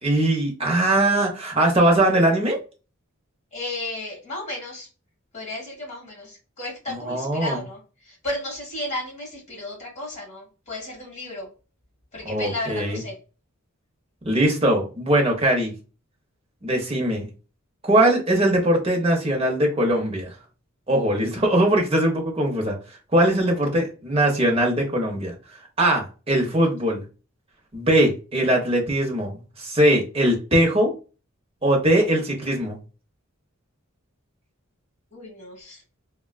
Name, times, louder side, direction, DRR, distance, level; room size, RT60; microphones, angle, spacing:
voice 1, 0.0-2.6 7.0-7.6 12.2-13.0 14.2-15.7 16.6-17.3 17.8-20.3 20.9-22.8 23.1-25.3 25.8-27.0 27.7-30.9 31.6-32.8, right 1 dB, 25° right, 1 dB, 0.7 m, -21 dB
voice 2, 3.5-4.9 5.3-11.5 12.1-13.2 24.1-24.5 35.1-35.8, left 1 dB, 35° left, -1 dB, 1.5 m, -34 dB
3.4 x 2.2 x 2.3 m, 0.33 s
head